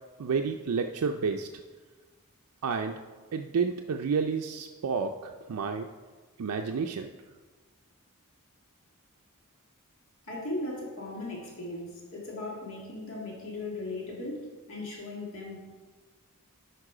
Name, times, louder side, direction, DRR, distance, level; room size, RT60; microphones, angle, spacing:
voice 1, 0.2-1.5 2.6-2.9 3.3-5.9 6.4-7.1, right 5 dB, 75° right, 4 dB, 0.4 m, -30 dB
voice 2, 10.3-15.6, left 2 dB, 65° left, -3 dB, 1.9 m, -37 dB
11.5 x 4.6 x 4.9 m, 1.4 s
head